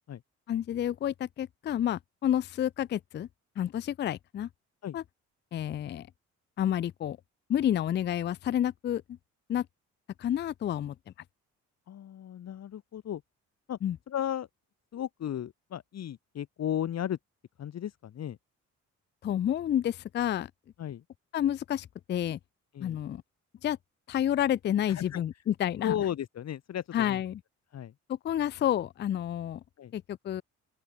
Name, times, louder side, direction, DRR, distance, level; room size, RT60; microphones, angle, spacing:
voice 1, 0.5-3.3 3.6-4.5 4.9-5.0 5.5-6.1 6.6-7.2 7.5-9.0 9.5-9.7 10.2-10.9 13.8-14.0 19.2-20.5 21.3-22.4 22.8-23.2 23.6-23.8 24.1-26.0 26.9-27.4 28.1-29.6 29.9-30.4, left 10 dB, 35° left, 0.4 m, -29 dB
voice 2, 11.9-13.2 13.7-13.8 14.1-14.5 14.9-17.2 17.6-18.4 20.8-21.0 22.7-23.0 24.9-25.2 25.8-27.2 27.7-27.9 29.8-29.9, left 10 dB, 60° left, 1.7 m, -35 dB
open air
cardioid pair, 90°, 30 cm